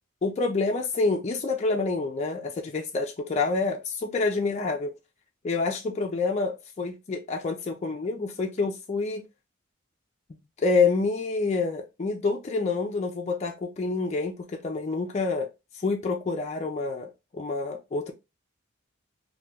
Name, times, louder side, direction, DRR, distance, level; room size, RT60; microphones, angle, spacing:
voice 1, 0.2-4.9 5.4-9.2 10.6-15.5 15.8-18.1, left 3 dB, 35° left, 0.4 m, -27 dB
2.9 x 2.2 x 3.3 m
head